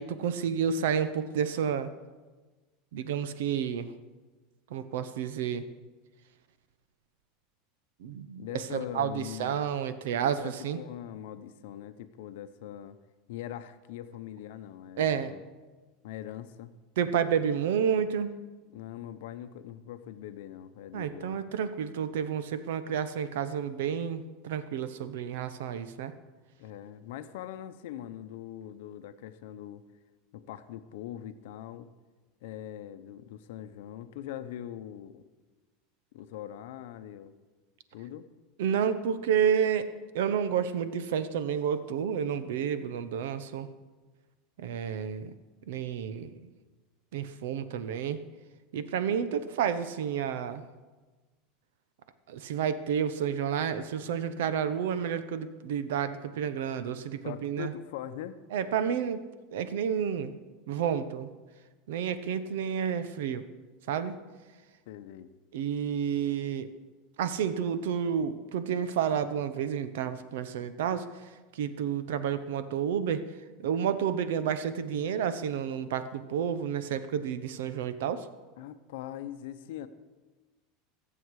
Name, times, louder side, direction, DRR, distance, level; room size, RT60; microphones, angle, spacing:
voice 1, 0.0-1.9 2.9-3.9 4.7-5.6 8.0-10.8 15.0-15.3 17.0-18.3 20.9-26.1 38.6-39.9 40.1-43.7 44.6-45.3 45.7-46.4 47.1-48.2 48.7-50.6 52.3-57.7 58.5-59.3 59.5-60.3 60.7-61.3 61.9-63.4 63.9-64.1 65.5-66.7 67.2-71.1 71.5-73.2 73.6-78.3, right 8 dB, 85° right, 12 dB, 0.8 m, -30 dB
voice 2, 8.4-9.7 10.4-13.0 13.3-15.4 16.0-16.7 18.7-21.4 26.6-29.8 30.3-31.9 32.4-35.2 36.1-37.3 37.9-38.3 57.2-58.4 64.9-65.3 75.0-75.1 78.6-79.9, left 11 dB, 70° left, 10 dB, 0.7 m, -42 dB
22.0 x 7.9 x 4.8 m, 1.3 s
supercardioid pair, 165°, 0 cm